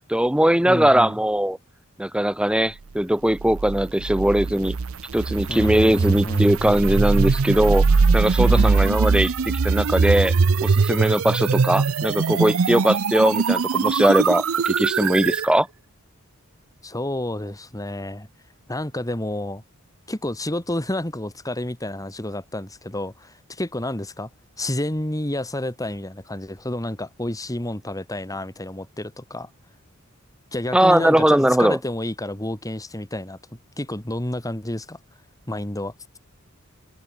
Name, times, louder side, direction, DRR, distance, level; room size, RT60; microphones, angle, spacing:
voice 1, 0.0-1.6 2.0-4.8 5.1-10.3 10.6-15.7 30.7-31.8, right 1 dB, 5° right, 0.9 m, -20 dB
voice 2, 0.7-1.2 5.5-6.5 8.4-9.0 16.8-18.3 18.7-19.6 20.1-24.3 24.6-29.5 30.5-33.4 33.8-35.0 35.5-35.9, left 1 dB, 15° left, 2.2 m, -30 dB
sound 1, 3.4-15.5, right 4 dB, 75° right, 0.6 m, -21 dB
open air
head